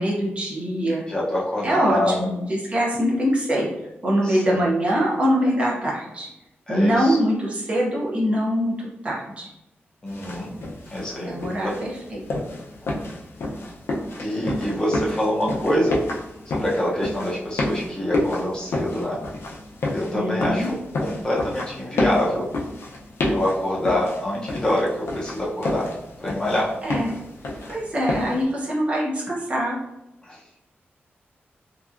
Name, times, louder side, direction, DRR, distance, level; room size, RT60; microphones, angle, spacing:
voice 1, 0.0-1.0 1.6-3.7 4.0-6.3 6.7-8.7 9.0-9.5 11.3-12.2 20.1-20.7 26.8-27.1 27.7-29.8, equal, 30° right, -4 dB, 0.7 m, -23 dB
voice 2, 1.1-2.2 4.2-4.7 6.7-7.2 10.0-10.5 10.9-11.7 14.2-16.0 16.5-19.2 19.9-22.5 23.3-25.9 26.2-26.7 30.2-30.4, left 1 dB, 20° left, -5 dB, 0.6 m, -25 dB
sound 1, 10.1-28.4, left 2 dB, 85° left, 0.5 m, -30 dB
2.7 x 2.3 x 2.4 m, 0.89 s
wide cardioid pair, 160°, 4 cm